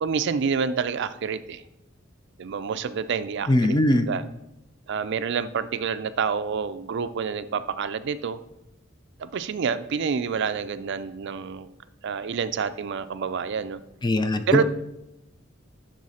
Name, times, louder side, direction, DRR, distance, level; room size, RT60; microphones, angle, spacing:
voice 1, 0.0-1.6 2.4-4.2 4.9-8.4 9.2-11.7 12.0-13.8 14.5-14.6, right 6 dB, 60° right, 12 dB, 0.4 m, -28 dB
voice 2, 3.5-4.1 14.0-14.6, left 1 dB, 20° left, 9 dB, 0.5 m, -21 dB
11.0 x 3.9 x 4.2 m, 0.86 s
head